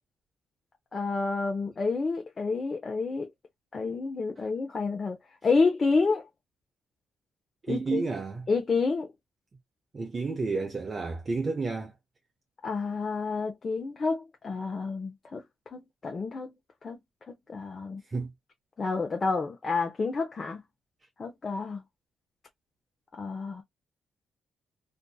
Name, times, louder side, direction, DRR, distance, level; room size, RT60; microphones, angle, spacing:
voice 1, 0.9-3.3 3.7-5.2 5.4-6.2 7.7-8.0 8.5-9.1 12.6-15.4 15.7-16.5 16.8-17.0 17.3-18.0 18.8-20.6 21.2-21.8 23.2-23.6, left 4 dB, 35° left, 0.7 m, -29 dB
voice 2, 7.6-8.5 9.9-11.9 18.1-18.3, right 4 dB, 35° right, 0.5 m, -31 dB
2.6 x 2.5 x 2.3 m
cardioid pair, 90°, 0 cm